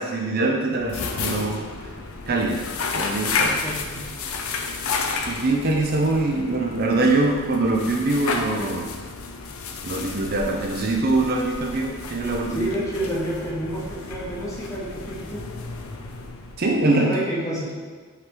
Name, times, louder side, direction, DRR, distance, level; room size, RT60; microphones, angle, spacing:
voice 1, 0.0-1.6 2.3-2.6 2.9-3.6 5.3-8.9 9.8-12.7 16.6-17.1, right 2 dB, 45° right, 0 dB, 0.6 m, -23 dB
sound 1, 0.7-16.9, left 4 dB, 75° left, 0.6 m, -32 dB
voice 2, 3.4-4.0 12.5-15.4 16.9-17.7, right 1 dB, 15° left, -6 dB, 1.2 m, -29 dB
5.6 x 4.8 x 3.8 m, 1.5 s
head